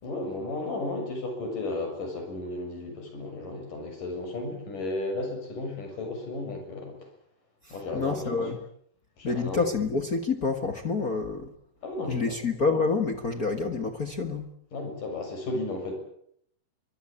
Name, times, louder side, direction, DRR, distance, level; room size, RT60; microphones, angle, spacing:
voice 1, 0.0-7.0 7.7-8.5 9.2-9.7 11.8-12.4 14.7-15.9, left 2 dB, 80° left, 4 dB, 8.5 m, -34 dB
voice 2, 7.6-8.7 9.2-11.5 12.1-14.4, left 4 dB, 35° left, 7 dB, 1.5 m, -28 dB
24.5 x 22.0 x 8.7 m, 0.70 s
omnidirectional pair, 3.7 m